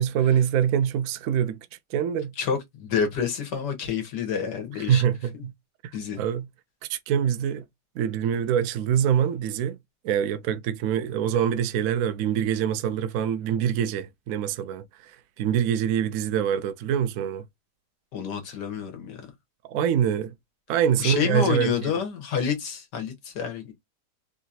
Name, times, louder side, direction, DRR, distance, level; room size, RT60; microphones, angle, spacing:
voice 1, 0.0-1.6 1.9-2.3 4.8-5.5 6.2-6.5 6.9-7.6 8.0-9.8 10.0-17.4 19.7-20.3 20.7-21.9, right 9 dB, 70° right, 0.9 m, -25 dB
voice 2, 2.4-5.0 5.9-6.2 18.1-19.2 21.0-23.7, left 7 dB, 85° left, 1.7 m, -28 dB
3.8 x 2.4 x 2.7 m
omnidirectional pair, 1.8 m